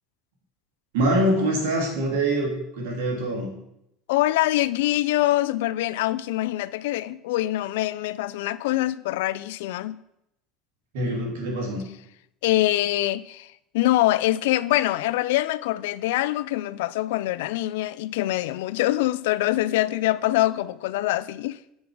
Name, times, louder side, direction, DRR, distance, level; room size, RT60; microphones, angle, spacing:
voice 1, 0.9-3.5 10.9-11.8, right 1 dB, 80° right, 2.5 m, -24 dB
voice 2, 4.1-10.0 12.4-21.6, left 16 dB, 85° left, 0.3 m, -24 dB
7.2 x 4.6 x 6.2 m
supercardioid pair, 95°, 0 cm